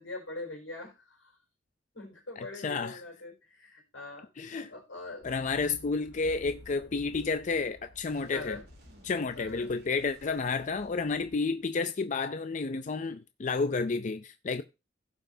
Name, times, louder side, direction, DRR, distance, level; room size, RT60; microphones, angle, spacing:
voice 1, 0.0-1.4 1.9-5.3 8.3-8.6 9.3-9.7, left 2 dB, 85° left, 4.6 m, -43 dB
voice 2, 2.4-3.0 4.4-4.7 5.2-8.6 9.0-14.6, left 4 dB, 40° left, 0.4 m, -31 dB
sound 1, 5.2-11.4, left 2 dB, 60° left, 1.2 m, -54 dB
sound 2, 8.1-11.8, equal, 55° right, 3.3 m, -57 dB
16.5 x 5.7 x 2.7 m
head